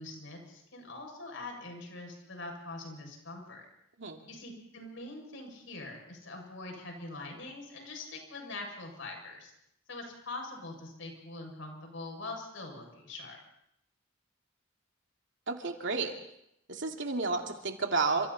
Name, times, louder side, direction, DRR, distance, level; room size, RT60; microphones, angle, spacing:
voice 1, 0.0-3.7 4.3-9.5 9.9-13.4, left 2 dB, 70° left, 2 dB, 7.3 m, -43 dB
voice 2, 15.5-16.1 16.7-18.3, right 3 dB, 65° right, 3 dB, 2.8 m, -31 dB
30.0 x 27.5 x 4.4 m, 0.77 s
head